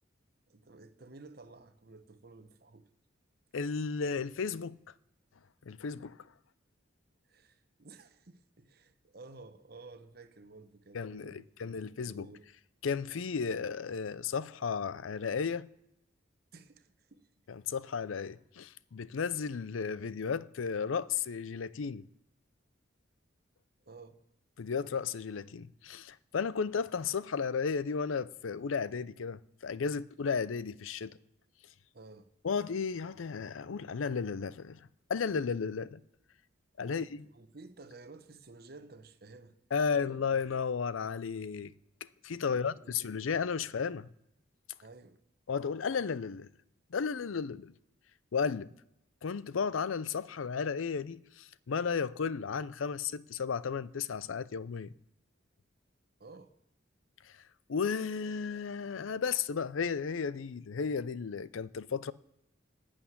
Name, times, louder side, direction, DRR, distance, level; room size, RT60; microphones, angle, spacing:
voice 1, 0.5-2.9 7.3-12.5 16.5-17.3 23.8-24.2 31.9-32.3 36.8-40.4 42.4-42.9 43.6-43.7 44.8-45.2 56.2-56.5, right 3 dB, 50° right, 0.9 m, -53 dB
voice 2, 3.5-4.8 5.7-6.2 10.9-12.3 12.8-15.7 17.5-22.1 24.6-31.2 32.4-36.0 36.8-37.2 39.7-41.7 42.2-44.1 45.5-46.5 46.9-47.7 48.3-48.7 49.2-54.9 57.2-57.4 57.7-62.1, left 5 dB, 85° left, 0.5 m, -34 dB
11.5 x 6.4 x 9.5 m
head